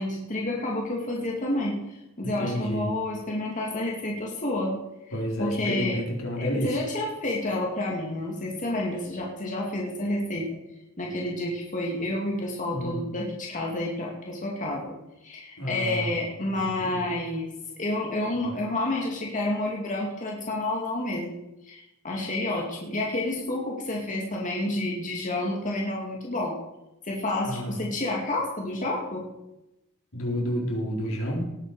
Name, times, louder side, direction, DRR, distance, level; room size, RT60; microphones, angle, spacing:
voice 1, 0.0-1.8 2.2-4.8 5.4-6.0 6.4-10.5 11.0-14.9 15.2-17.5 17.8-21.4 21.6-26.6 27.0-29.3, left 1 dB, 40° left, -2 dB, 2.4 m, -29 dB
voice 2, 2.2-2.9 5.1-6.7 12.7-13.0 15.6-16.1 16.5-17.1 18.4-18.5 27.5-27.8 30.1-31.4, equal, 75° left, -2 dB, 4.2 m, -30 dB
18.5 x 8.4 x 5.0 m, 0.91 s
head